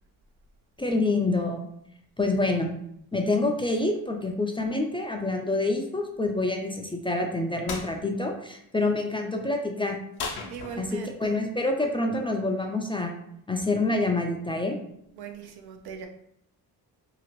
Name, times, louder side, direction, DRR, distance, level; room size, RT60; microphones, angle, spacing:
voice 1, 0.8-1.6 2.2-2.7 3.1-10.0 10.8-13.1 13.5-14.8, left 2 dB, 15° left, 2 dB, 0.4 m, -27 dB
sound 1, 7.7-7.9 10.2-11.1, left 4 dB, 75° left, 0.7 m, -35 dB
voice 2, 10.5-11.4 15.2-16.1, right 6 dB, 75° right, 5 dB, 0.6 m, -40 dB
2.8 x 2.4 x 2.9 m, 0.73 s
cardioid pair, 75°, 39 cm